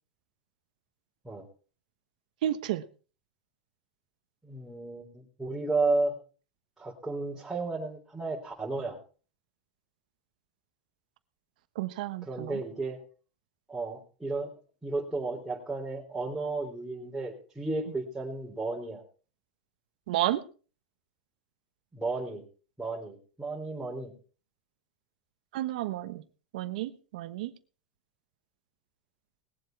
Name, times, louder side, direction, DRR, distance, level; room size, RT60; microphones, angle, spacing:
voice 1, 2.4-2.8 11.8-12.6 20.1-20.4 25.5-26.2 26.5-27.5, right 14 dB, 75° right, 11 dB, 1.1 m, -31 dB
voice 2, 4.4-6.1 6.8-9.0 12.2-13.0 13.7-14.5 14.8-19.0 21.9-22.4 22.8-24.1, right 3 dB, 5° right, -6 dB, 3.7 m, -33 dB
20.0 x 7.8 x 4.7 m, 0.38 s
supercardioid pair, 120°, 4 cm